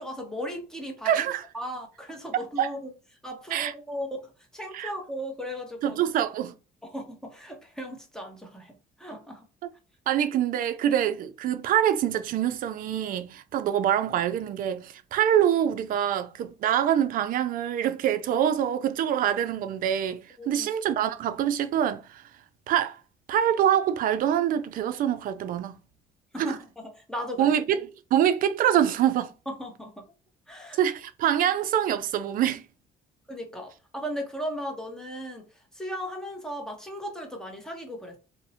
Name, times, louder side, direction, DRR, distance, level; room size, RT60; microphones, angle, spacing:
voice 1, 0.0-1.3 1.5-2.9 3.2-4.2 4.5-6.0 6.8-9.4 20.4-20.7 26.3-27.5 29.5-30.0 30.5-30.8 33.3-35.5 35.7-38.2, equal, 5° left, 0.8 m, -36 dB
voice 2, 1.0-1.4 2.6-2.7 3.5-3.7 4.7-4.9 5.8-6.5 9.6-9.7 10.1-22.2 22.7-23.0 23.3-25.8 26.4-26.6 27.4-29.3 30.7-32.6, right 10 dB, 55° right, 0.4 m, -25 dB
2.6 x 2.1 x 2.7 m
cardioid pair, 110°, 17 cm